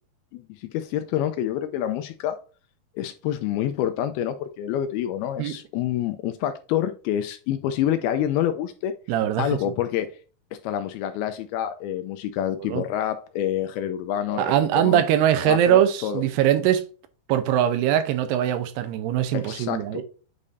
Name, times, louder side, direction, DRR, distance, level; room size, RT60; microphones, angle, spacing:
voice 1, 0.3-2.4 3.0-8.9 9.4-10.1 10.6-15.0 15.4-16.2 19.3-20.0, left 11 dB, 80° left, 2.3 m, -27 dB
voice 2, 9.1-9.5 12.6-12.9 14.4-16.8 17.3-20.0, right 11 dB, 85° right, 2.8 m, -22 dB
8.4 x 5.0 x 2.6 m
omnidirectional pair, 4.7 m